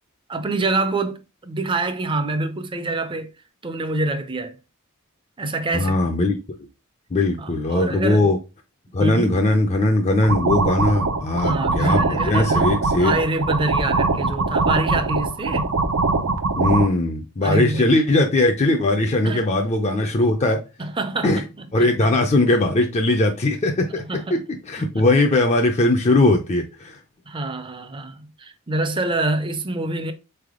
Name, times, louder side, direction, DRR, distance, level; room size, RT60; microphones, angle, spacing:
voice 1, 0.3-3.3 3.6-4.6 5.4-6.1 7.4-8.3 9.0-9.4 11.4-15.7 17.4-18.1 19.2-19.5 20.8-22.1 23.9-24.4 24.8-25.1 27.3-30.1, right 2 dB, 25° right, 0.5 m, -26 dB
voice 2, 5.7-6.4 7.1-8.4 8.9-13.2 16.6-20.6 21.2-21.4 21.7-24.0 24.3-27.0, left 2 dB, 30° left, 0.5 m, -19 dB
sound 1, 10.2-16.9, right 3 dB, 80° right, 0.6 m, -22 dB
4.1 x 3.4 x 3.6 m
head